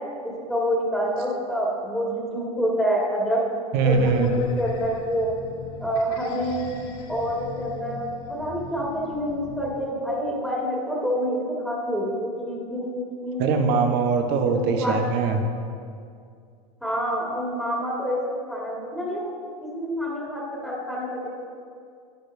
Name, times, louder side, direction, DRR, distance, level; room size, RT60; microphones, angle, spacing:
voice 1, 0.2-3.5 3.8-5.3 5.8-6.7 7.1-13.8 14.4-15.0 16.8-19.3 19.7-21.3, equal, ahead, -5 dB, 2.0 m, -27 dB
voice 2, 3.7-4.3 13.4-15.4, right 5 dB, 55° right, 5 dB, 1.2 m, -22 dB
sound 1, 3.8-9.8, left 4 dB, 55° left, 1.4 m, -39 dB
12.0 x 10.0 x 2.7 m, 2.3 s
hypercardioid pair, 100°, 20 cm